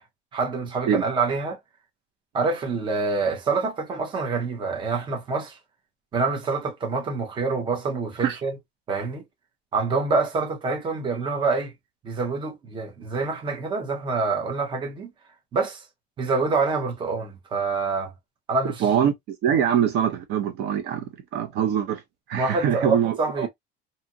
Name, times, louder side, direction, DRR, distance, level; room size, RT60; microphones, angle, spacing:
voice 1, 0.3-1.6 2.3-5.6 6.1-8.6 8.9-9.2 9.7-11.7 12.0-15.1 15.5-15.8 16.2-18.1 18.5-18.8 22.3-23.5, right 4 dB, 25° right, 0.8 m, -26 dB
voice 2, 18.8-22.0 22.3-23.5, right 9 dB, 55° right, 0.6 m, -24 dB
2.7 x 2.5 x 2.6 m
cardioid pair, 170°, 20 cm